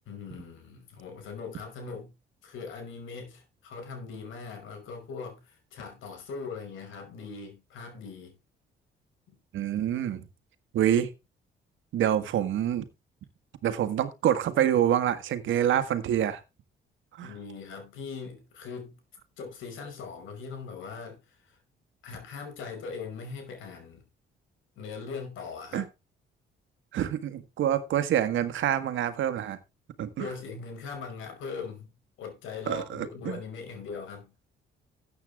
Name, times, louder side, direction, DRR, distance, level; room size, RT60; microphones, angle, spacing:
voice 1, 0.1-2.1 2.4-8.4 9.3-9.4 17.2-19.0 19.4-21.6 22.0-24.0 24.8-25.9 30.2-31.9 32.2-34.3, left 5 dB, 80° left, 5.6 m, -40 dB
voice 2, 9.5-10.3 10.7-11.1 11.9-12.8 13.6-16.4 17.2-17.3 25.7-25.8 26.9-29.6 30.0-30.3 32.7-33.4, right 10 dB, 75° right, 1.6 m, -26 dB
13.5 x 8.6 x 3.6 m
cardioid pair, 90°, 20 cm